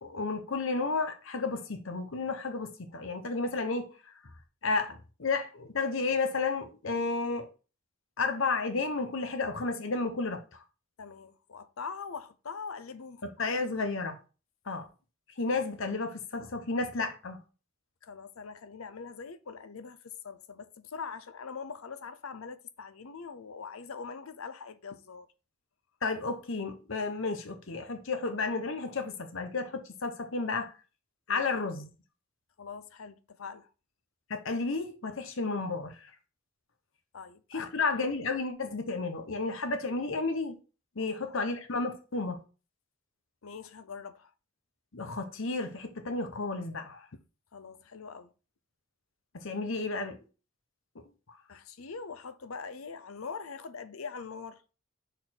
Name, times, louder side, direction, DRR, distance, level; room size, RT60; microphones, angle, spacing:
voice 1, 0.0-4.3 4.6-7.5 8.2-10.6 13.4-14.2 14.7-14.9 15.4-17.4 26.0-30.8 31.3-31.9 34.3-36.1 37.5-40.6 41.0-42.4 44.9-47.1 49.3-50.2, left 3 dB, 65° left, 1.0 m, -32 dB
voice 2, 11.0-13.2 18.0-25.3 31.3-31.4 32.6-33.7 37.1-37.7 41.0-41.4 43.4-44.3 47.1-47.2 47.5-48.3 51.5-54.6, left 5 dB, 85° left, 0.7 m, -43 dB
6.6 x 4.2 x 4.2 m
head